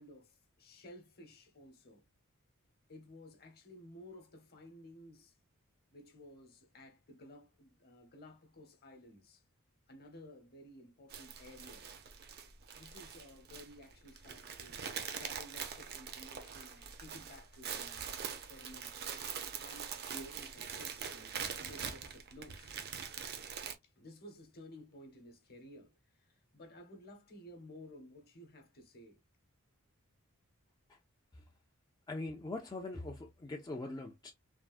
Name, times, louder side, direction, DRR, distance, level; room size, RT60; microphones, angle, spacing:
voice 1, 0.0-2.0 2.9-5.4 5.9-9.4 9.9-11.9 12.7-19.1 19.6-22.7 23.8-29.2, left 1 dB, 45° left, 0.9 m, -55 dB
sound 1, 11.1-23.8, right 7 dB, 50° right, 0.5 m, -43 dB
voice 2, 32.1-34.3, left 2 dB, 20° left, 0.4 m, -42 dB
3.4 x 2.0 x 2.4 m
head